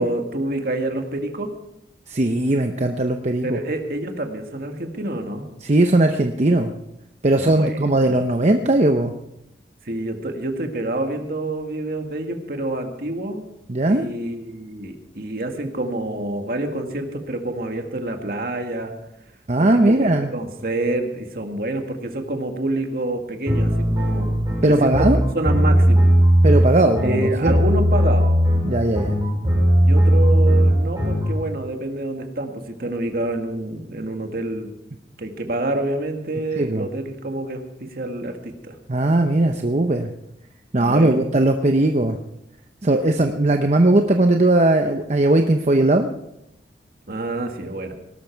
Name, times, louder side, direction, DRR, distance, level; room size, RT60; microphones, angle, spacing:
voice 1, 0.0-1.5 3.4-5.5 7.3-8.2 9.9-13.5 13.9-18.9 19.6-26.0 27.0-28.3 29.8-34.7 35.2-38.8 40.8-41.2 47.1-47.9, right 1 dB, 55° right, 4 dB, 1.9 m, -27 dB
voice 2, 2.1-3.6 5.6-6.7 7.2-9.1 13.7-14.1 19.5-20.3 24.6-25.2 26.4-27.5 28.6-29.1 36.6-36.9 38.9-40.1 40.7-42.2 42.8-46.1, right 2 dB, 40° right, 5 dB, 0.8 m, -18 dB
sound 1, 23.5-31.4, equal, 20° right, 5.1 m, -17 dB
18.5 x 12.5 x 4.6 m, 0.84 s
head